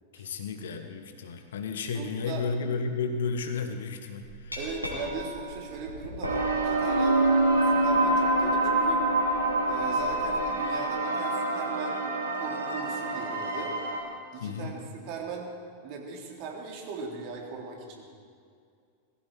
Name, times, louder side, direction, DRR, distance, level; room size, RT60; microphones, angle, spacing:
voice 1, 0.1-4.6 14.4-14.8, left 4 dB, 60° left, 6 dB, 1.4 m, -33 dB
voice 2, 1.9-2.5 4.6-9.1 9.7-12.0 12.4-13.7 14.3-15.5 15.8-18.1, right 5 dB, 45° right, 0 dB, 3.1 m, -39 dB
Glass, 4.2-10.4, right 1 dB, 90° left, 3.1 m, -29 dB
sound 1, 6.2-14.0, right 2 dB, 65° right, 2.3 m, -28 dB
19.0 x 15.5 x 4.7 m, 2.3 s
figure-of-eight pair, 90°, 0 cm